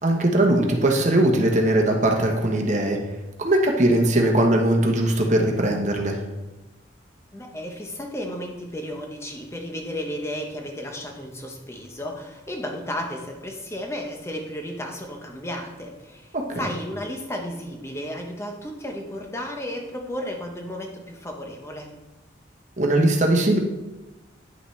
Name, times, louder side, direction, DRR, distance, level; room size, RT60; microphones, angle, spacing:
voice 1, 0.0-3.0 3.4-6.2 16.3-16.6 22.8-23.6, right 1 dB, 40° right, 2 dB, 1.0 m, -20 dB
voice 2, 7.3-21.9, equal, 15° left, 2 dB, 0.9 m, -33 dB
9.9 x 5.8 x 3.3 m, 1.1 s
head